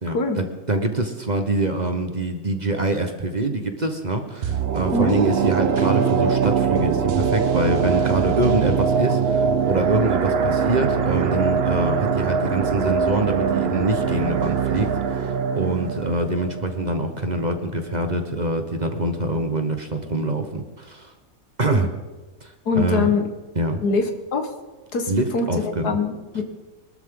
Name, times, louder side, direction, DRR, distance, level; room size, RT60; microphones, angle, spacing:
voice 1, 0.0-21.1 21.6-21.9 22.4-23.1 23.5-23.8 25.1-26.0, right 2 dB, 30° right, 5 dB, 1.2 m, -25 dB
sound 1, 4.4-17.5 17.8-17.9, right 6 dB, 50° right, 0.9 m, -22 dB
voice 2, 22.7-23.2 23.8-24.5 24.9-26.4, left 3 dB, 85° left, 5 dB, 2.1 m, -23 dB
23.5 x 13.0 x 3.8 m, 1.2 s
omnidirectional pair, 1.6 m